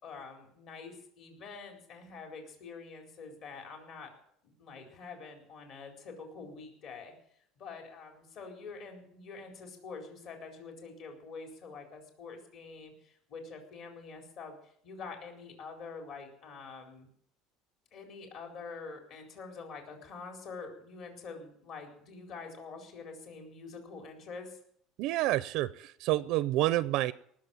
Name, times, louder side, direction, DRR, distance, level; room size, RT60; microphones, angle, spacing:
voice 1, 0.0-4.1 4.4-7.1 7.6-17.1 17.9-24.6, left 4 dB, 50° left, 2 dB, 4.3 m, -46 dB
voice 2, 25.0-27.1, right 16 dB, 65° right, 17 dB, 0.5 m, -28 dB
19.0 x 7.4 x 8.9 m, 0.68 s
cardioid pair, 145°, 0 cm